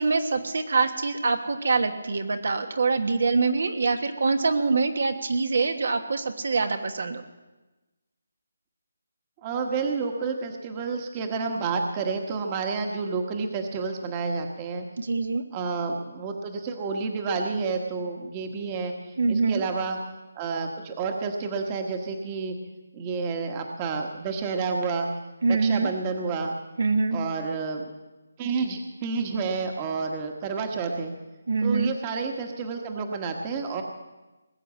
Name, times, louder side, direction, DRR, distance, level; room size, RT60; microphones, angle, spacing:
voice 1, 0.0-7.2 15.0-15.4 19.2-19.6 25.4-25.9 26.8-27.2 31.5-31.9, right 4 dB, 65° right, 7 dB, 1.4 m, -24 dB
voice 2, 9.4-14.9 15.5-18.9 19.3-20.0 20.4-22.5 22.9-25.1 25.5-26.5 27.1-27.9 28.4-31.1 31.6-33.8, right 4 dB, 25° right, 4 dB, 1.4 m, -29 dB
20.0 x 8.0 x 7.4 m, 1.1 s
figure-of-eight pair, 160°, 0 cm